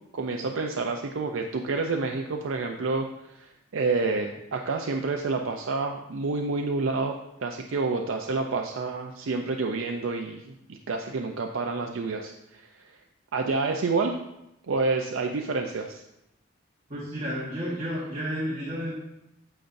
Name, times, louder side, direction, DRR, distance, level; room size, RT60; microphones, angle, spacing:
voice 1, 0.1-12.9 13.3-14.2 14.7-16.0, right 3 dB, 75° right, 3 dB, 0.5 m, -29 dB
voice 2, 16.9-18.9, equal, 35° right, -7 dB, 1.5 m, -31 dB
9.0 x 6.8 x 2.6 m, 0.87 s
head